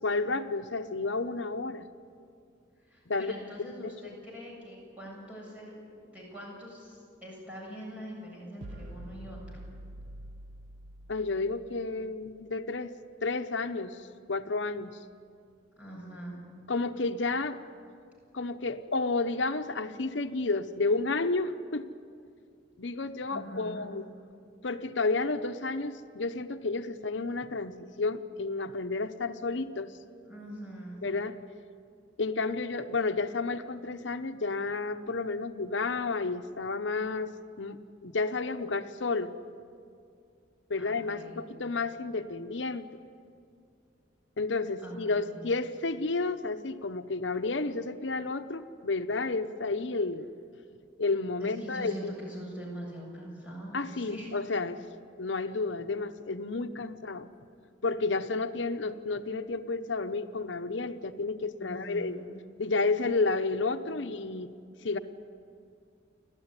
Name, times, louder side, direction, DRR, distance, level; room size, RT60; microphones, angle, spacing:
voice 1, 0.0-1.9 3.1-3.3 3.8-4.2 11.1-12.9 13.2-14.0 14.3-15.0 16.7-17.6 18.3-21.9 22.8-24.0 24.6-29.9 31.0-31.4 32.2-37.3 37.6-39.3 40.7-42.9 44.4-50.3 51.0-51.9 53.7-54.8 55.2-57.3 57.8-62.2 62.6-64.5 64.8-65.0, left 3 dB, 75° left, 8 dB, 0.9 m, -31 dB
voice 2, 2.8-5.7 6.0-9.6 15.8-16.4 23.3-23.9 30.2-31.1 40.8-41.4 44.8-45.4 51.4-54.4 55.5-55.6 61.6-62.4, equal, 10° right, -4 dB, 7.8 m, -43 dB
sound 1, 8.6-12.0, right 1 dB, 80° right, 0.8 m, -46 dB
29.5 x 13.0 x 9.7 m, 2.4 s
head